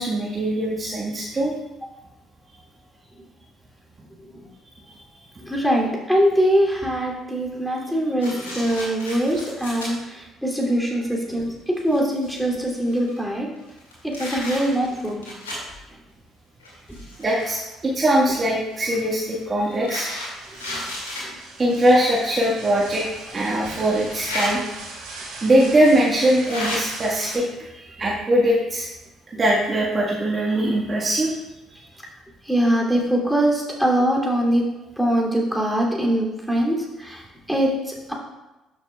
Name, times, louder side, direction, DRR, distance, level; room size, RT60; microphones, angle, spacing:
voice 1, 0.0-1.5 17.2-20.2 21.6-24.6 25.4-28.9 29.3-31.3, right 1 dB, 35° right, -5 dB, 1.5 m, -21 dB
voice 2, 5.4-13.5 14.0-15.3 16.9-17.0 20.7-20.8 21.2-21.4 32.4-34.6 35.0-38.1, equal, ahead, -2 dB, 2.7 m, -23 dB
sound 1, 8.2-9.9 10.6-10.7 11.4-11.5 11.8-13.2 13.7-15.7 16.6-17.7 18.7-21.3 22.5-22.6 24.0-24.5 25.5-25.6 26.4-26.8, left 1 dB, 90° left, 2.3 m, -33 dB
sound 2, 20.1-27.4, right 3 dB, 75° right, 2.6 m, -40 dB
12.5 x 6.8 x 2.3 m, 1.0 s
hypercardioid pair, 50°, 0 cm